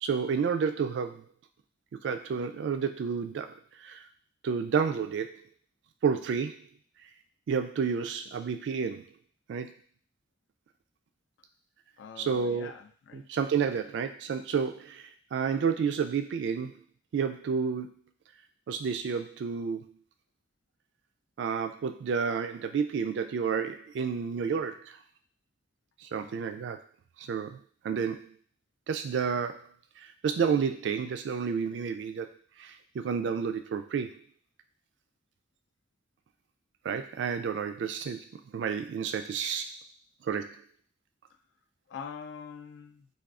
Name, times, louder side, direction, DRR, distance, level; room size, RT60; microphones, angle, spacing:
voice 1, 0.0-1.3 2.0-4.0 4.4-5.4 6.0-6.7 7.5-9.1 9.5-9.7 12.2-12.7 13.1-16.8 17.1-18.0 18.7-19.9 21.4-25.0 26.0-26.8 27.2-27.6 27.8-28.3 28.9-29.7 30.0-32.3 32.6-34.2 36.8-38.3 38.5-39.7 40.2-40.6, right 6 dB, 65° right, 8 dB, 0.3 m, -30 dB
voice 2, 12.0-13.3 26.1-26.4 41.9-43.1, left 6 dB, 70° left, 7 dB, 0.3 m, -44 dB
2.4 x 2.3 x 3.5 m, 0.43 s
head